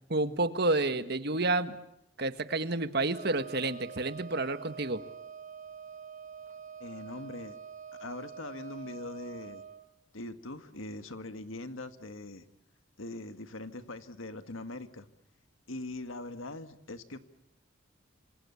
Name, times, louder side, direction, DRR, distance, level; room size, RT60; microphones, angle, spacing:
voice 1, 0.1-1.8 2.2-5.0, right 2 dB, 55° right, 10 dB, 1.6 m, -29 dB
Wind instrument woodwind instrument, 3.1-9.8, right 7 dB, 40° right, 1.5 m, -46 dB
voice 2, 6.8-7.6 8.0-9.6 10.1-12.4 13.0-15.1 15.7-17.2, left 2 dB, 90° left, 9 dB, 1.9 m, -41 dB
27.5 x 26.5 x 7.1 m, 0.78 s
head